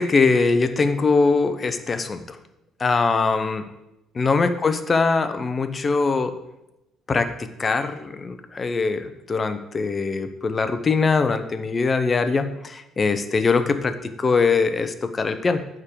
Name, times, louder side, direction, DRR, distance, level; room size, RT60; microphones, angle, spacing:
voice 1, 0.0-2.4 2.8-3.6 4.2-6.3 7.1-15.7, left 4 dB, 25° left, 9 dB, 0.7 m, -22 dB
8.8 x 3.7 x 6.8 m, 0.88 s
cardioid pair, 130°, 0 cm